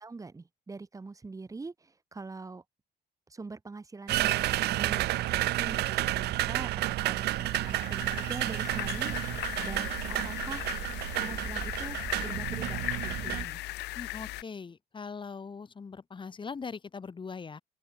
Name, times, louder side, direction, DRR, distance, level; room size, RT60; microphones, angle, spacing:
voice 1, 0.0-2.6 3.3-10.7 11.2-13.6, right 3 dB, 20° right, 3.3 m, -43 dB
sound 1, 4.1-13.5, right 16 dB, 75° right, 1.4 m, -31 dB
sound 2, 7.2-14.4, left 18 dB, 85° left, 2.4 m, -38 dB
voice 2, 13.9-17.6, left 5 dB, 30° left, 4.4 m, -41 dB
open air
cardioid pair, 110°, 17 cm